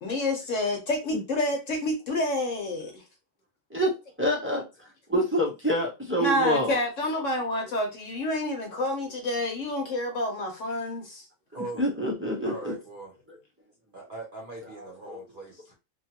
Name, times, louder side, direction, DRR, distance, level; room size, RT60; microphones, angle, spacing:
voice 1, 0.0-3.0 6.2-11.2, left 1 dB, 70° left, 1.1 m, -28 dB
voice 2, 4.2-4.6 5.1-6.7 11.8-12.7 15.1-15.2, equal, 15° right, 0.4 m, -26 dB
voice 3, 11.5-11.9 12.4-13.2 13.9-15.7, right 3 dB, 45° right, 0.8 m, -40 dB
3.0 x 2.3 x 2.8 m
omnidirectional pair, 1.4 m